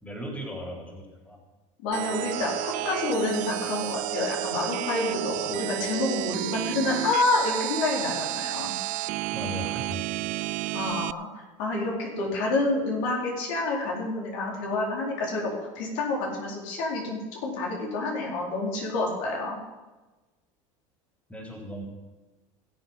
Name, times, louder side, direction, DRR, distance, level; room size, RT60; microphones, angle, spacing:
voice 1, 0.0-1.4 5.4-5.5 9.3-10.1 21.3-21.8, equal, 10° left, 0 dB, 3.7 m, -37 dB
voice 2, 1.8-8.7 10.7-19.6, left 2 dB, 70° left, -2 dB, 4.2 m, -28 dB
sound 1, 1.9-11.1, right 18 dB, 55° right, 0.4 m, -31 dB
19.5 x 7.1 x 5.7 m, 1.2 s
hypercardioid pair, 90°, 17 cm